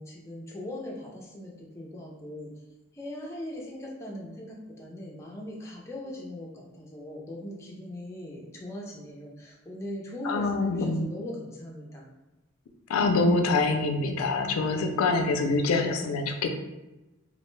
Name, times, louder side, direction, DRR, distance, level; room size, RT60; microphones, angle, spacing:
voice 1, 0.0-2.6 2.9-12.0, left 1 dB, 15° left, -3 dB, 0.4 m, -40 dB
voice 2, 10.2-11.0 12.9-16.5, left 3 dB, 85° left, 5 dB, 0.3 m, -25 dB
2.5 x 2.1 x 3.0 m, 1.0 s
head